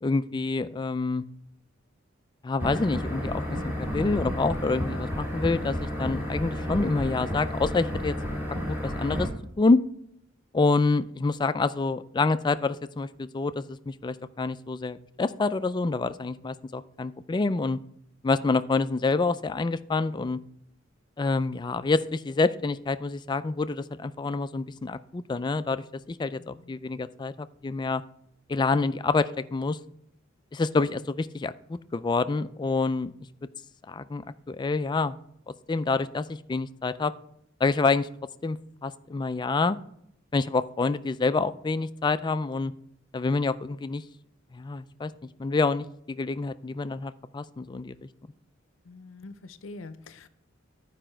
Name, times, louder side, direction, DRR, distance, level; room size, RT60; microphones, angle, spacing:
voice 1, 0.0-1.2 2.4-8.1 8.7-9.3 9.6-9.8 10.5-17.8 18.2-20.4 21.2-28.0 28.5-29.8 30.5-33.1 33.9-35.2 35.5-37.1 37.6-38.1 38.4-39.8 40.3-42.7 43.1-44.0 44.5-45.1 45.4-48.1, left 3 dB, 20° left, 13 dB, 0.3 m, -27 dB
sound 1, 2.6-9.3, equal, 10° right, 1.7 m, -31 dB
voice 2, 26.4-26.7 48.9-50.3, left 2 dB, 75° left, 12 dB, 0.6 m, -45 dB
11.5 x 5.0 x 4.4 m, 0.72 s
head